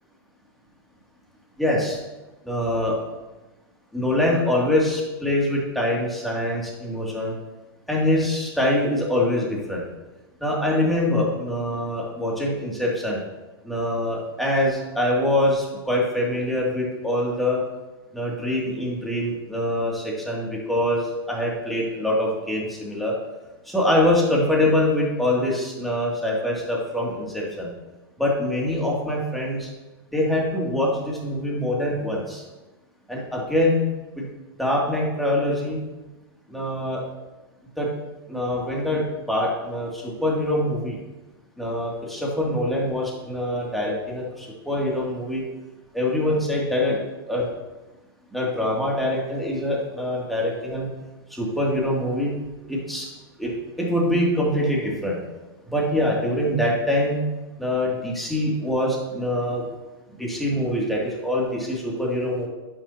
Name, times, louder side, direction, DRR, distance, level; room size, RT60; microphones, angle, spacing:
voice 1, 1.6-2.0 2.4-2.9 3.9-7.3 7.9-9.8 10.4-13.2 13.7-17.6 18.1-23.1 23.7-27.7 28.2-29.7 30.1-32.4 33.1-33.8 34.2-34.3 34.6-35.8 36.5-37.0 37.8-37.9 38.3-39.0 39.3-41.0 41.6-45.4 45.9-47.0 47.3-47.4 48.3-50.9 51.4-52.3 52.7-53.0 53.4-53.5 53.8-55.2 55.7-57.2 57.6-59.6 60.2-62.5, left 1 dB, ahead, -4 dB, 2.4 m, -24 dB
11.5 x 7.4 x 2.8 m, 1.1 s
hypercardioid pair, 125°, 14 cm